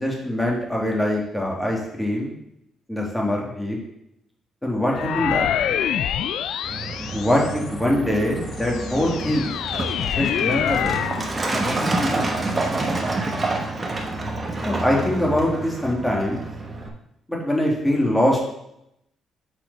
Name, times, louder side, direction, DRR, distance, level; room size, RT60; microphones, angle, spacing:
voice 1, 0.0-2.3 2.9-3.8 4.6-5.5 7.1-9.5 10.0-11.0 11.5-12.3 14.6-16.4 17.3-18.4, left 1 dB, 10° left, -2 dB, 2.2 m, -23 dB
sound 1, 4.9-7.8 8.4-11.3, left 9 dB, 80° left, 0.3 m, -26 dB
Truck, 6.6-16.9, right 2 dB, 25° right, 1.2 m, -28 dB
6.6 x 4.3 x 5.3 m, 0.81 s
cardioid pair, 90°, 0 cm